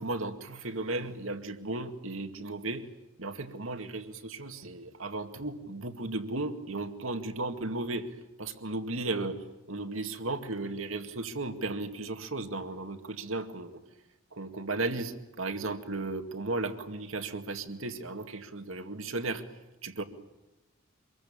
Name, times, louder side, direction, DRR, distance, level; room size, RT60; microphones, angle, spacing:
voice 1, 0.0-2.9 3.2-13.8 14.3-20.0, right 2 dB, 85° right, 7 dB, 2.1 m, -35 dB
26.0 x 22.5 x 8.8 m, 1.0 s
head